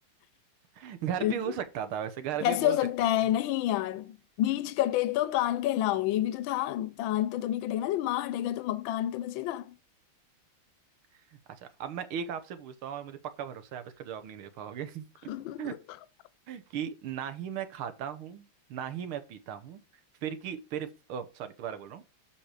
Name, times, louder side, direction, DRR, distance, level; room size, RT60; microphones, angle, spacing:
voice 1, 0.8-2.8 11.6-15.1 15.6-15.7 16.5-19.8 20.2-22.0, right 9 dB, 85° right, 1.9 m, -37 dB
voice 2, 2.4-9.7 15.3-15.7, left 13 dB, 80° left, 1.3 m, -29 dB
7.2 x 5.5 x 4.9 m
omnidirectional pair, 2.3 m